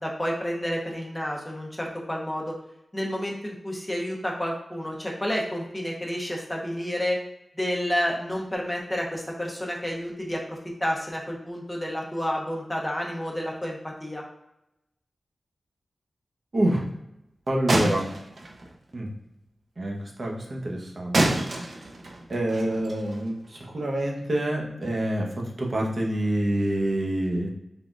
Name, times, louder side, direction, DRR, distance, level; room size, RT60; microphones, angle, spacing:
voice 1, 0.0-2.5 2.9-7.2 7.6-14.2, equal, 10° left, -1 dB, 0.9 m, -30 dB
voice 2, 16.5-16.8 17.5-18.1 18.9-19.1 19.8-21.2 22.3-25.3 25.6-27.5, right 1 dB, 45° right, -1 dB, 0.9 m, -26 dB
sound 1, 17.7-18.9 21.1-23.6, right 2 dB, 65° right, 0.6 m, -28 dB
3.9 x 3.6 x 2.4 m, 0.87 s
wide cardioid pair, 100°, 0 cm